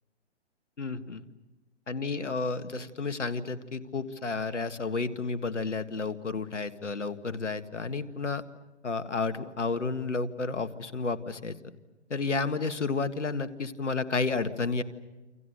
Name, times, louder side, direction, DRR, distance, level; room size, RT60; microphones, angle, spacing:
voice 1, 0.8-1.2 1.9-8.4 8.8-11.6 12.1-14.8, left 4 dB, 90° left, 11 dB, 1.8 m, -31 dB
28.5 x 27.0 x 6.7 m, 1.2 s
hypercardioid pair, 135°, 35 cm